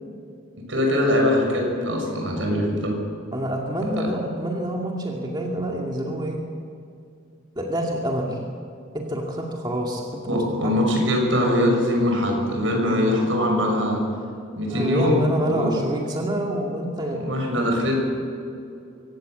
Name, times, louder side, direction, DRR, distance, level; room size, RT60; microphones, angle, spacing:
voice 1, 0.7-3.0 4.0-4.1 10.3-14.0 14.6-15.7 17.2-18.0, left 1 dB, 75° right, 1 dB, 6.8 m, -22 dB
voice 2, 3.3-6.4 7.6-8.4 8.9-10.4 14.7-17.2, right 1 dB, 20° right, -1 dB, 2.3 m, -27 dB
24.5 x 17.5 x 7.8 m, 2.5 s
head